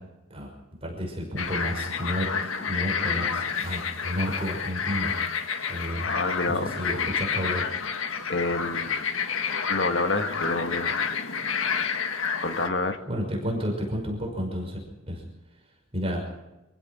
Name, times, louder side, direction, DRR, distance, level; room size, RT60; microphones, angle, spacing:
voice 1, 0.8-2.3 2.7-5.2 5.7-6.2 6.5-7.7 13.1-14.8 15.1-15.2 15.9-16.2, equal, 30° right, 0 dB, 5.9 m, -31 dB
sound 1, 1.4-12.7, left 6 dB, 90° left, 1.6 m, -29 dB
voice 2, 6.0-6.7 8.3-8.9 9.7-10.9 12.4-13.0, left 2 dB, 60° left, 7 dB, 1.7 m, -27 dB
26.0 x 16.0 x 6.2 m, 0.98 s
head